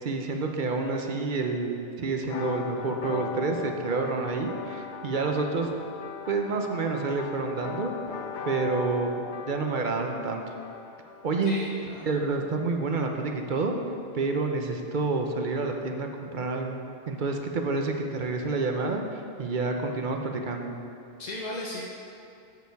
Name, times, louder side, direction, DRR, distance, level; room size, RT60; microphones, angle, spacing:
voice 1, 0.0-5.7 6.3-7.9 8.5-9.1 9.5-10.5 11.2-11.5 12.0-13.7 14.1-16.8 17.1-20.7, right 3 dB, 45° right, 3 dB, 0.7 m, -28 dB
sound 1, 2.2-11.8, left 6 dB, 90° left, 0.4 m, -39 dB
voice 2, 11.4-12.1 21.2-21.8, left 1 dB, 40° left, -2 dB, 0.6 m, -36 dB
13.5 x 5.1 x 4.6 m, 2.7 s
omnidirectional pair, 1.5 m